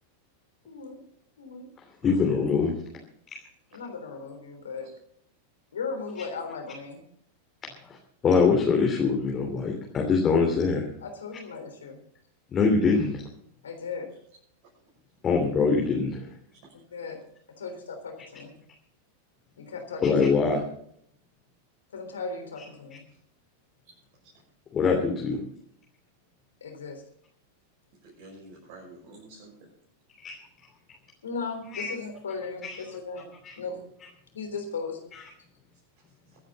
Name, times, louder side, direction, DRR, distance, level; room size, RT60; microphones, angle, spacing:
voice 1, 0.7-1.0 1.4-1.7 3.7-4.9 5.7-7.0 11.0-12.0 13.6-14.1 16.9-17.2 17.6-18.5 19.6-20.1 21.9-23.0 26.6-27.0 31.2-33.3 33.6-33.8 34.3-35.0, left 4 dB, 65° left, 5 dB, 3.7 m, -36 dB
voice 2, 2.0-2.7 7.9-8.0 8.2-10.9 12.5-13.1 15.2-16.2 20.0-20.6 24.7-25.4 30.2-30.4 31.7-31.9 32.6-32.7 33.4-33.5, left 5 dB, 25° left, 0 dB, 3.0 m, -23 dB
voice 3, 28.0-29.7 36.3-36.4, right 2 dB, 50° right, -4 dB, 6.3 m, -49 dB
23.5 x 10.0 x 4.1 m, 0.66 s
figure-of-eight pair, 90°, 0 cm